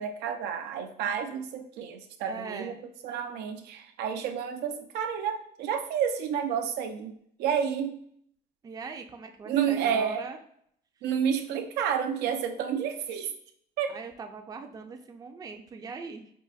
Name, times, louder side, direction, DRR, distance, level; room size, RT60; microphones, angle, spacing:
voice 1, 0.0-2.7 3.0-8.0 9.5-10.3 11.0-13.3 13.8-14.0, right 8 dB, 85° right, 5 dB, 0.5 m, -30 dB
voice 2, 2.3-2.8 8.6-10.4 13.9-16.3, right 4 dB, 20° right, 5 dB, 0.4 m, -41 dB
4.7 x 2.4 x 2.3 m, 0.68 s
cardioid pair, 110°, 17 cm